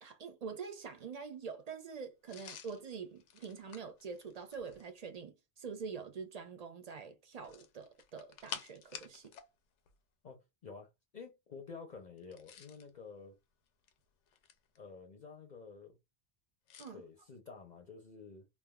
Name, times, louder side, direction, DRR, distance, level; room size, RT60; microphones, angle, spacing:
voice 1, 0.0-9.3 16.8-17.0, right 5 dB, 50° right, 0.5 m, -45 dB
sound 1, 2.3-4.9 7.4-9.5 9.8-10.0 12.2-12.9 13.7-14.8 16.7-16.9, left 8 dB, 85° left, 0.9 m, -50 dB
voice 2, 10.2-13.4 14.8-16.0 16.9-18.5, left 5 dB, 50° left, 0.6 m, -50 dB
3.3 x 2.3 x 2.2 m
omnidirectional pair, 1.2 m